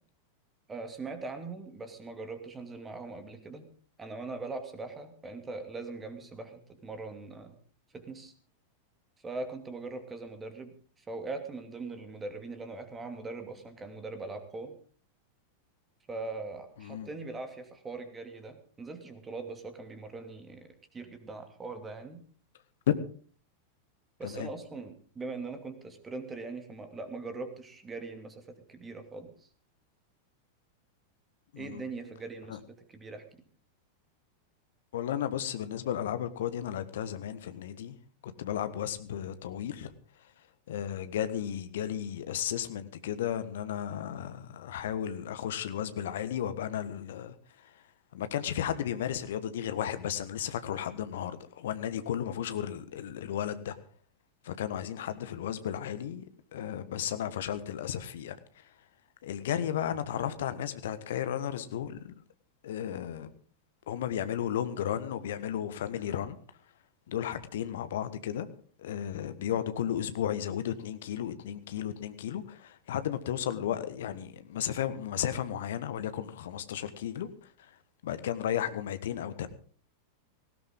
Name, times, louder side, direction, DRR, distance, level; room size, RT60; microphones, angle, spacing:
voice 1, 0.7-3.7 4.0-7.6 7.9-8.3 9.2-14.7 16.1-22.2 24.2-29.3 31.6-32.6 32.9-33.4, right 3 dB, 15° right, 7 dB, 2.8 m, -41 dB
voice 2, 16.8-17.1 24.2-24.5 31.5-31.8 32.5-32.6 34.9-38.0 38.2-39.9 40.7-47.8 48.1-53.7 54.4-56.2 56.5-58.7 59.2-62.1 62.6-63.3 63.9-66.4 67.1-68.5 68.8-77.7 78.0-79.5, left 10 dB, 60° left, 11 dB, 1.5 m, -34 dB
19.0 x 16.5 x 3.8 m, 0.43 s
figure-of-eight pair, 90°, 0 cm